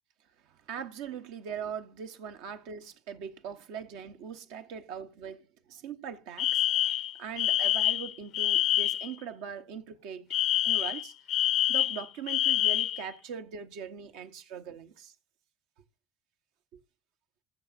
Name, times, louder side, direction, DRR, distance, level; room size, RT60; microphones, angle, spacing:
voice 1, 0.7-5.4 5.7-6.8 7.2-10.3 10.6-11.1 11.7-15.1, right 7 dB, 65° right, 0.9 m, -41 dB
Alarm, 6.4-9.1 10.3-13.0, left 13 dB, 55° left, 0.6 m, -26 dB
19.0 x 7.2 x 2.5 m
hypercardioid pair, 65°, 0 cm